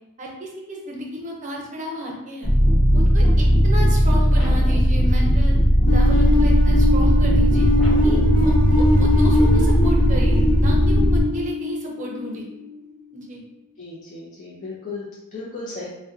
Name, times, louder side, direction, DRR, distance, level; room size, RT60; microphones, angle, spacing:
voice 1, 0.2-2.5 2.9-5.6 5.9-7.7 8.0-12.5 13.1-13.4, equal, 35° right, -1 dB, 0.6 m, -33 dB
sound 1, 2.4-11.2, equal, ahead, 1.1 m, -17 dB
sound 2, 5.9-12.7, left 2 dB, 85° left, 0.8 m, -23 dB
voice 2, 13.8-15.9, left 3 dB, 35° left, -7 dB, 0.6 m, -35 dB
2.7 x 2.2 x 3.5 m, 0.94 s
head